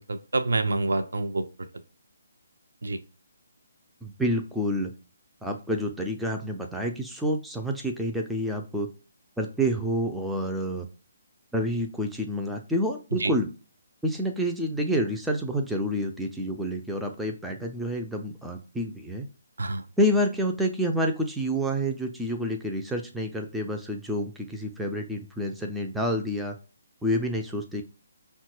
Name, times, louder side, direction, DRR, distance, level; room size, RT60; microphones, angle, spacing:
voice 1, 0.0-1.5 2.8-3.0 13.2-13.3 19.6-19.8, right 2 dB, 60° right, 8 dB, 0.5 m, -27 dB
voice 2, 4.0-4.9 5.4-8.9 9.4-10.9 11.5-13.5 14.0-19.3 20.0-26.6 27.0-27.8, equal, 5° right, 1 dB, 0.4 m, -28 dB
5.5 x 2.2 x 3.0 m, 0.33 s
figure-of-eight pair, 140°, 0 cm